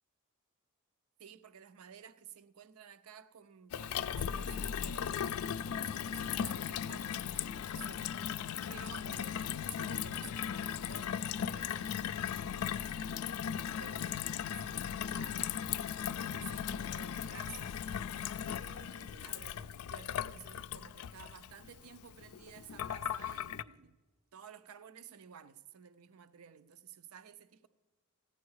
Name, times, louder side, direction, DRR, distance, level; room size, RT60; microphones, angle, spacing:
voice 1, 1.2-8.1 8.7-13.2 13.6-15.7 16.1-17.8 18.6-24.0 24.3-27.7, right 8 dB, 75° right, 0.5 m, -54 dB
Gurgling / Water tap faucet / Sink (filling or washing), 3.7-23.6, left 8 dB, 90° left, 0.4 m, -37 dB
15.0 x 9.5 x 4.7 m
head